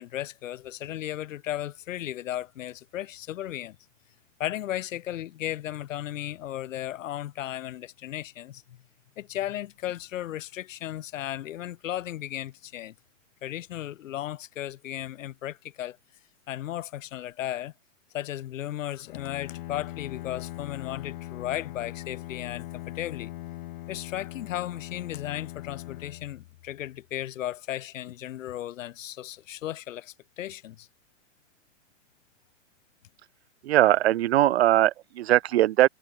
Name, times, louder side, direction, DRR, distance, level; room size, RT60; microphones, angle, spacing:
voice 1, 0.0-3.8 4.4-8.8 9.2-12.9 13.4-16.0 16.5-17.7 18.1-23.3 23.9-30.9, left 12 dB, 85° left, 0.8 m, -35 dB
Bowed string instrument, 19.0-27.0, left 16 dB, 40° left, 1.3 m, -40 dB
voice 2, 33.6-35.9, right 14 dB, 55° right, 0.5 m, -20 dB
hypercardioid pair, 165°, 38 cm